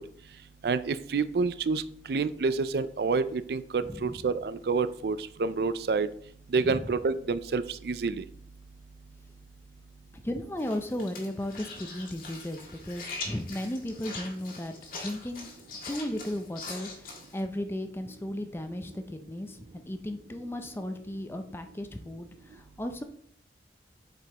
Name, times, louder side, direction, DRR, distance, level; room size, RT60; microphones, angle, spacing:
voice 1, 0.6-1.8 2.1-6.1 6.5-8.2, right 4 dB, 60° right, 14 dB, 0.4 m, -28 dB
voice 2, 3.9-4.2 6.6-6.9 10.2-15.5 15.9-23.0, left 1 dB, 15° left, 7 dB, 0.5 m, -35 dB
sound 1, 10.6-17.4, left 3 dB, 50° left, 1.8 m, -42 dB
7.7 x 5.1 x 2.9 m, 0.64 s
head